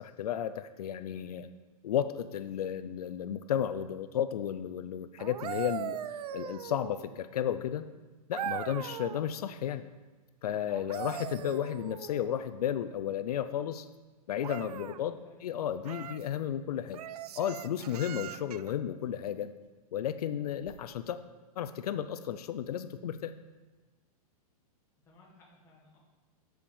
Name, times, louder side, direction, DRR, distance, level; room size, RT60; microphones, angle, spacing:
voice 1, 0.0-1.5 1.8-6.0 6.3-7.8 8.3-9.8 10.4-13.9 14.3-15.1 15.4-17.0 17.4-19.5 19.9-21.2 21.6-23.3, left 10 dB, 80° left, 11 dB, 0.5 m, -33 dB
sound 1, 5.2-7.2 8.3-9.3 10.7-12.3 14.4-15.0 15.8-16.3 16.9-18.7 20.6-20.8, right 10 dB, 80° right, 0.5 m, -40 dB
voice 2, 14.6-14.9 15.2-15.4 25.0-26.0, left 2 dB, 15° left, -4 dB, 1.6 m, -58 dB
7.8 x 5.0 x 7.0 m, 1.3 s
supercardioid pair, 180°, 19 cm